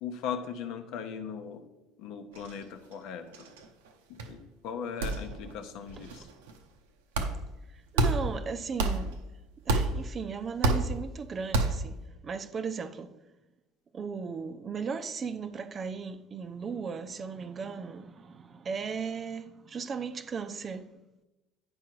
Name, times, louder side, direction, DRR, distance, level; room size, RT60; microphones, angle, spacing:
voice 1, 0.0-1.7 2.0-3.4 4.1-6.3, left 7 dB, 65° left, 0.9 m, -38 dB
sound 1, 2.3-2.6 2.9-3.0 3.3-3.9 4.2-4.3 5.0-5.5 5.9-6.5 7.1-7.6 8.0-8.4 8.8-9.3 9.7-10.2 10.6-11.1 11.5-11.9, right 2 dB, 80° right, 0.7 m, -29 dB
voice 2, 7.7-9.2 9.6-13.1 13.9-20.9, right 5 dB, 40° right, 0.6 m, -37 dB
9.5 x 4.7 x 4.6 m
hypercardioid pair, 60°, 0 cm